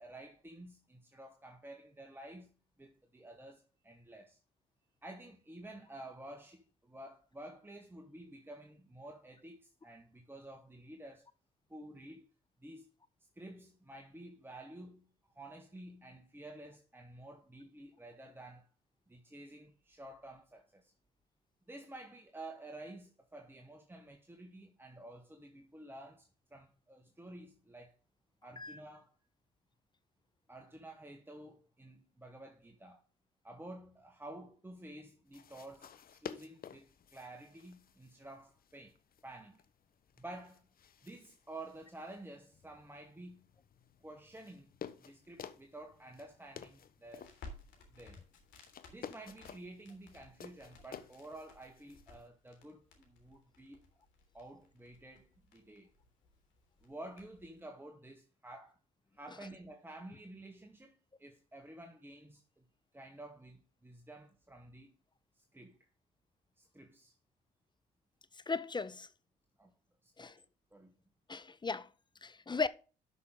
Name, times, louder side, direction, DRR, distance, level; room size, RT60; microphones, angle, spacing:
voice 1, 0.0-4.4 5.0-11.3 11.7-12.3 12.6-12.9 13.3-15.1 15.3-18.7 19.1-20.9 21.7-28.0 28.4-29.1 30.5-33.0 33.4-39.6 40.2-40.7 41.0-43.5 44.0-44.7 45.0-47.3 47.9-48.2 48.9-53.8 54.3-55.9 56.8-58.8 59.1-62.6 62.9-64.9 65.3-65.9 66.6-67.1 69.6-69.7 70.0-70.4 70.7-70.9, right 1 dB, 10° right, 1.5 m, -51 dB
sound 1, 35.3-52.3, left 8 dB, 45° left, 1.1 m, -53 dB
Crackle, 47.1-57.6, left 2 dB, 60° left, 3.3 m, -58 dB
voice 2, 68.5-69.1 70.2-70.3 71.3-71.9 72.2-72.7, left 4 dB, 20° left, 0.8 m, -36 dB
12.5 x 5.9 x 3.8 m
hypercardioid pair, 65°, 21 cm